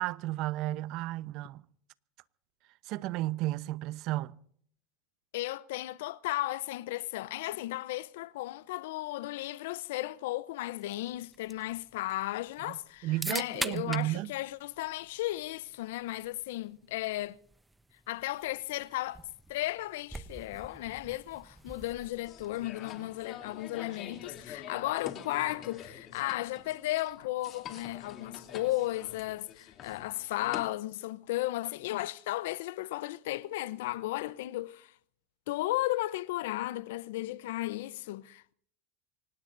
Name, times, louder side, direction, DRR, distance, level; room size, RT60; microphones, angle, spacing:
voice 1, 0.0-1.6 2.8-4.4 12.7-12.8 13.0-14.3, right 17 dB, 60° right, 0.8 m, -33 dB
voice 2, 5.3-17.4 18.1-19.2 19.5-34.9 35.5-38.5, left 17 dB, 75° left, 0.7 m, -35 dB
sound 1, 10.8-22.7, right 2 dB, 10° right, 1.0 m, -45 dB
sound 2, 22.3-30.7, left 8 dB, 45° left, 3.0 m, -46 dB
25.0 x 19.5 x 2.7 m
hypercardioid pair, 95°, 0 cm